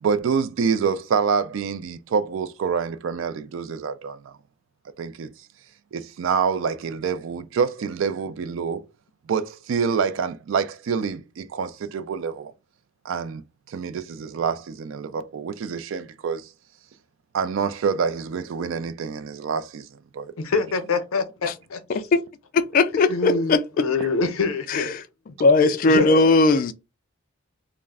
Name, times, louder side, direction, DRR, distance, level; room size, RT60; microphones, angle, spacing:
voice 1, 0.0-4.3 5.0-5.3 5.9-8.8 9.3-12.5 13.0-13.4 13.7-16.5 17.3-19.9 20.1-20.3, right 6 dB, 65° right, 0.3 m, -26 dB
voice 2, 20.4-22.0 23.1-24.9 25.8-26.4, left 4 dB, 85° left, 0.6 m, -25 dB
voice 3, 22.5-23.8 24.7-25.0 25.4-26.7, left 3 dB, 40° left, 0.3 m, -19 dB
2.4 x 2.1 x 3.4 m
head